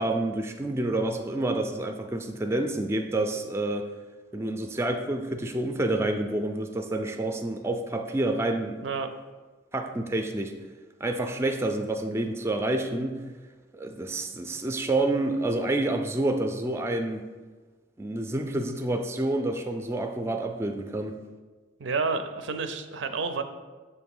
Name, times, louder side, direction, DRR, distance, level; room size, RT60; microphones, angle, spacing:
voice 1, 0.0-3.9 4.3-8.8 9.7-10.5 11.0-13.2 13.7-17.3 18.0-21.1, right 2 dB, 15° right, 5 dB, 0.3 m, -28 dB
voice 2, 21.8-23.4, right 4 dB, 85° right, 9 dB, 0.5 m, -29 dB
6.5 x 2.9 x 5.4 m, 1.3 s
head